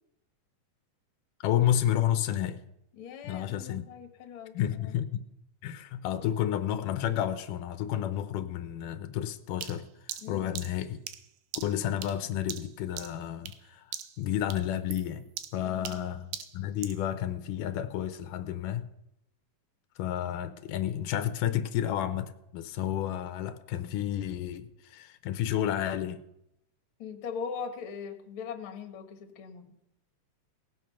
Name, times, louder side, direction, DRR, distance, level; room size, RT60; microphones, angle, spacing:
voice 1, 1.4-2.6 3.2-3.9 4.5-5.2 5.6-9.9 10.3-11.0 11.6-13.8 14.2-15.2 15.5-18.9 20.0-26.2, left 11 dB, 90° left, 2.4 m, -31 dB
voice 2, 3.0-4.6 4.8-4.9 10.2-10.5 15.6-16.0 27.0-29.7, left 6 dB, 55° left, 1.7 m, -40 dB
sound 1, 9.6-13.7 13.9-14.3 14.5-17.1, right 11 dB, 85° right, 2.4 m, -41 dB
18.0 x 7.7 x 5.6 m
omnidirectional pair, 3.6 m